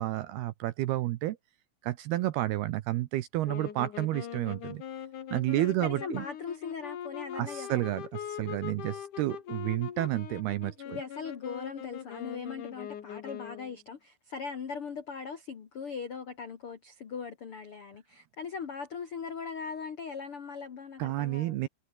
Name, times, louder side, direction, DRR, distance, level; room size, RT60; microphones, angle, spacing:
voice 1, 0.0-1.4 1.8-4.8 5.3-6.2 7.4-11.0 21.0-21.7, right 15 dB, 75° right, 2.4 m, -31 dB
sound 1, 3.4-13.8, left 9 dB, 55° left, 2.9 m, -42 dB
voice 2, 5.5-8.0 10.8-21.6, left 6 dB, 70° left, 1.3 m, -40 dB
omnidirectional pair, 5.4 m